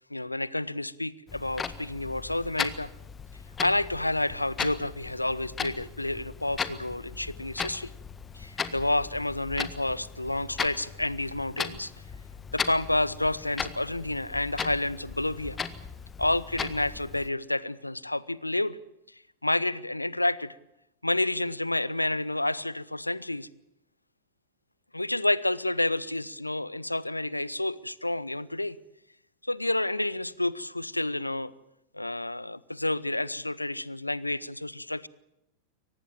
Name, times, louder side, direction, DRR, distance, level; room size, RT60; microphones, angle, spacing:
voice 1, 0.1-2.9 3.6-7.9 8.3-11.9 12.5-15.6 16.2-18.8 19.4-20.6 21.0-23.5 24.9-28.8 29.5-31.5 31.9-35.1, left 1 dB, 85° left, 21 dB, 0.8 m, -29 dB
Clock, 1.3-17.3, left 6 dB, 20° left, 1.6 m, -37 dB
23.5 x 19.0 x 8.8 m, 0.84 s
figure-of-eight pair, 90°, 0 cm